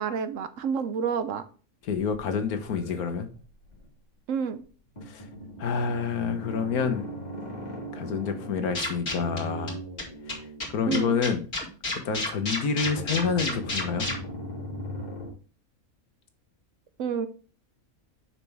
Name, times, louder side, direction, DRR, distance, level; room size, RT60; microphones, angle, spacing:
voice 1, 0.0-1.4 4.3-4.6 10.9-11.2 17.0-17.3, right 6 dB, 65° right, 1.0 m, -29 dB
voice 2, 1.8-3.3 5.0-5.3 5.6-7.1 7.9-9.8 10.3-11.4 11.9-14.1, left 6 dB, 90° left, 1.5 m, -28 dB
sound 1, 1.8-3.9 4.6-4.7 5.0-11.4 12.8-15.3, left 1 dB, 30° left, 2.0 m, -39 dB
sound 2, 8.7-9.4 9.7-9.8 10.0-10.1 10.3-10.4 10.6-14.1, left 2 dB, 45° left, 2.5 m, -30 dB
7.1 x 5.9 x 3.5 m
omnidirectional pair, 1.5 m